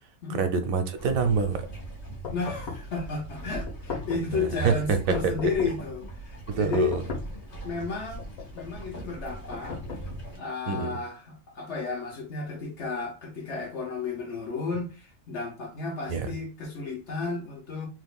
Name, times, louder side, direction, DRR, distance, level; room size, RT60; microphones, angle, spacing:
voice 1, 0.3-1.7 4.3-5.3 6.5-7.0 10.7-10.9 16.1-16.3, right 5 dB, 75° right, 1.0 m, -26 dB
sound 1, 1.0-10.4, right 2 dB, 40° left, 1.2 m, -41 dB
sound 2, 2.2-3.0 3.7-4.4 5.1-5.9 6.7-7.5 8.2-8.8 9.5-10.4, left 5 dB, 80° left, 1.3 m, -38 dB
voice 2, 2.3-6.9 7.6-8.3 8.5-9.8 10.4-17.9, left 4 dB, 60° left, 1.0 m, -32 dB
3.5 x 2.8 x 2.3 m
omnidirectional pair, 1.5 m